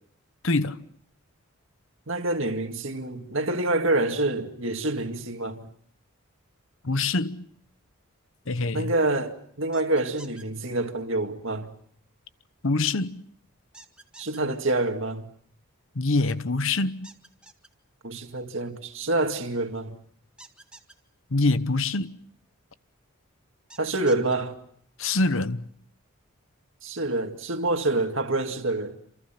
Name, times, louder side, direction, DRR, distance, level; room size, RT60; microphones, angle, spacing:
voice 1, 0.4-0.8 6.8-7.5 8.5-8.9 12.6-13.2 15.9-17.1 21.3-22.1 25.0-25.7, left 3 dB, 60° left, 1.0 m, -25 dB
voice 2, 2.1-5.7 8.7-11.7 14.2-15.2 18.0-20.0 23.8-24.6 26.8-29.0, right 2 dB, 60° right, 2.2 m, -27 dB
sound 1, 9.7-10.4 13.7-14.4 17.0-17.7 20.4-20.9 23.7-24.3, right 2 dB, 5° right, 1.7 m, -48 dB
28.0 x 27.0 x 5.8 m
head